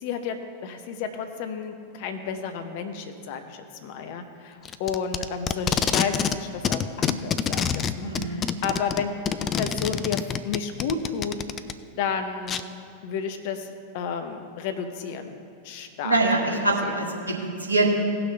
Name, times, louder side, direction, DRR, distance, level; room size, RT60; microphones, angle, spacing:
voice 1, 0.0-11.4 12.0-12.6 13.0-15.3 15.6-16.2 16.8-17.0, left 6 dB, 50° left, 7 dB, 0.8 m, -32 dB
Packing tape duct tape, 4.6-6.4 6.6-11.7 12.5-12.6, left 7 dB, 25° left, 0.4 m, -26 dB
voice 2, 8.0-8.4 16.0-17.9, right 2 dB, 80° right, -1 dB, 1.6 m, -24 dB
17.5 x 6.0 x 3.9 m, 2.5 s
figure-of-eight pair, 90°, 0 cm